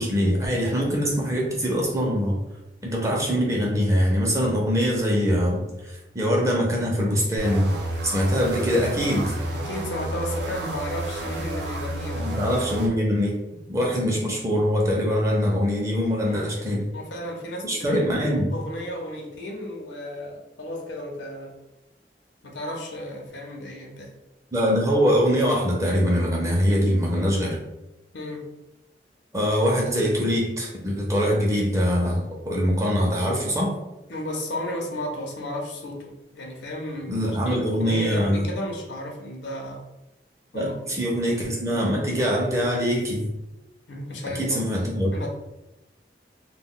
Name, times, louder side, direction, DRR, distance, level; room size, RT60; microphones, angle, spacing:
voice 1, 0.0-2.4 2.8-7.8 8.0-9.3 12.1-13.4 13.7-16.9 17.6-18.5 24.5-27.6 29.3-33.8 37.1-38.4 40.5-43.3 44.3-45.1, equal, 15° right, -2 dB, 0.5 m, -23 dB
sound 1, 7.4-12.9, right 1 dB, 75° right, 0.5 m, -31 dB
voice 2, 9.5-12.3 16.3-21.6 22.4-24.1 27.1-27.4 28.1-28.5 34.1-39.8 40.5-41.0 43.9-44.4 45.1-45.3, left 1 dB, 90° left, 1 dB, 0.6 m, -34 dB
2.2 x 2.2 x 3.6 m, 0.97 s
head